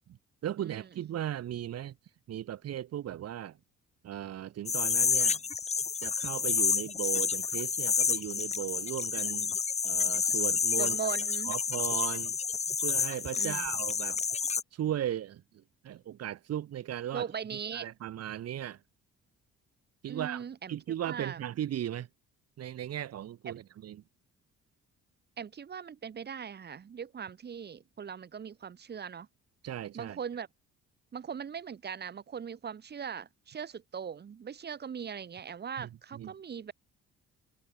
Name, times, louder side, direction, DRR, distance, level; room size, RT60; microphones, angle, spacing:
voice 1, 0.4-2.0 2.3-3.6 4.0-5.4 6.0-9.6 9.8-11.0 11.5-12.4 12.8-14.2 14.7-17.3 17.7-18.8 20.0-20.4 20.7-22.1 22.6-24.0 29.6-30.2 35.8-36.3, right 11 dB, 55° right, 5.2 m, -37 dB
sound 1, 4.7-14.6, left 5 dB, 25° left, 0.9 m, -29 dB
voice 2, 10.8-11.5 13.4-13.7 17.1-17.9 20.1-20.8 21.0-21.4 23.4-23.5 25.4-29.3 29.9-30.5 31.1-36.7, right 7 dB, 35° right, 3.2 m, -40 dB
cardioid pair, 150°, 29 cm